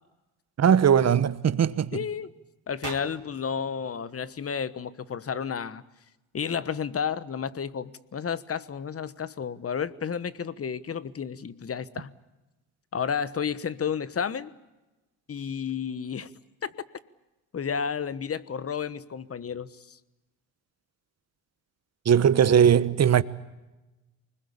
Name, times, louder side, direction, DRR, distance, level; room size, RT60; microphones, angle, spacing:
voice 1, 0.6-2.0 22.0-23.2, right 8 dB, 40° right, 1.2 m, -19 dB
voice 2, 1.9-2.3 2.7-5.8 6.3-12.1 12.9-14.5 15.3-16.3 16.6-16.7 17.5-20.0, left 7 dB, 35° left, 1.3 m, -31 dB
sound 1, 2.8-5.0, right 10 dB, 70° right, 3.2 m, -45 dB
24.5 x 21.0 x 8.5 m
supercardioid pair, 75°, 41 cm